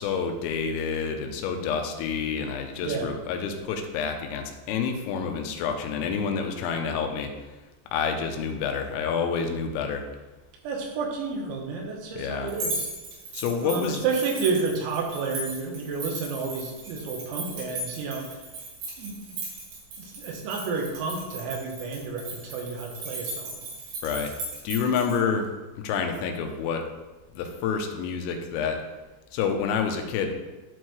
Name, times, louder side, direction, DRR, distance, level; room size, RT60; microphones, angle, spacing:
voice 1, 0.0-7.3 7.9-10.0 12.2-12.5 13.3-14.1 24.0-24.3 24.6-26.8 27.3-28.8 29.3-30.3, left 6 dB, 85° left, 5 dB, 3.3 m, -28 dB
voice 2, 10.6-12.9 13.6-18.3 19.0-19.4 20.0-23.7, right 4 dB, 90° right, 1 dB, 3.8 m, -31 dB
sound 1, 12.5-25.2, right 2 dB, 70° right, 4.3 m, -37 dB
12.5 x 4.5 x 3.1 m, 1.1 s
omnidirectional pair, 5.9 m